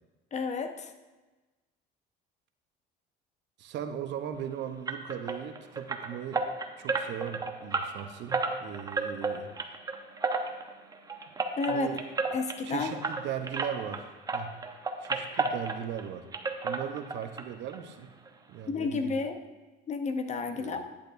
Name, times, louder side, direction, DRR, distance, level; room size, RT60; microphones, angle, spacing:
voice 1, 0.3-0.9 11.6-11.9 12.3-13.0 18.7-19.4 19.9-20.8, left 4 dB, 35° left, 8 dB, 0.7 m, -31 dB
voice 2, 3.6-6.4 6.8-9.5 11.7-12.0 12.7-14.5 15.0-16.3 16.6-18.1 18.5-19.1 20.5-20.8, right 9 dB, 65° right, 8 dB, 0.8 m, -38 dB
sound 1, 4.9-14.0 14.3-16.1 16.3-17.4 17.7-17.8 18.3-18.4 18.7-18.8, right 3 dB, 20° right, 0.7 m, -33 dB
10.0 x 8.7 x 2.6 m, 1.2 s
cardioid pair, 110°, 20 cm